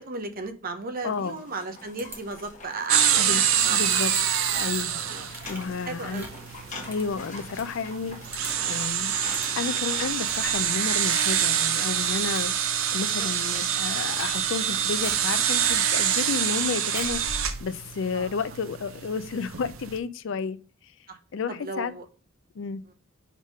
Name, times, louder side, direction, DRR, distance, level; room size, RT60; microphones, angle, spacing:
voice 1, 0.0-4.0 5.1-5.3 5.9-6.3 13.2-13.3 18.1-18.3 21.1-21.2 21.5-22.0 22.9-23.0, right 3 dB, 45° right, 0.8 m, -35 dB
voice 2, 1.0-1.4 3.2-3.4 3.7-4.1 4.5-5.0 5.5-6.3 6.9-8.2 8.7-9.1 9.5-20.6 21.3-21.9 22.6-22.8, left 5 dB, 65° left, 0.4 m, -31 dB
sound 1, 1.0-10.1, left 3 dB, 40° left, 1.3 m, -44 dB
sound 2, 2.0-2.7 3.9-4.2 4.5-4.8 5.3-7.7 8.0-8.1 8.3-8.8 9.3-9.5 10.2-10.8 11.2-11.7 12.1-12.6 13.4-13.7 14.0-14.7 15.0-15.9 16.9-17.3, right 1 dB, 10° right, 1.5 m, -42 dB
sound 3, 2.9-20.0, right 9 dB, 85° right, 0.7 m, -26 dB
5.1 x 3.6 x 5.3 m
head